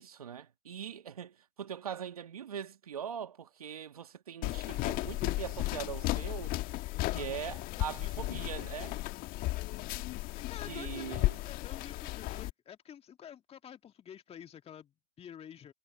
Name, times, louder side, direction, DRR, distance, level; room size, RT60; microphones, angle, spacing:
voice 1, 0.0-6.5 7.1-9.0 10.7-11.4, right 8 dB, 85° right, 2.0 m, -41 dB
sound 1, 4.4-12.5, left 19 dB, 50° left, 1.6 m, -35 dB
voice 2, 6.9-8.1 10.3-15.7, left 9 dB, 35° left, 2.2 m, -50 dB
hypercardioid pair, 80°, 18 cm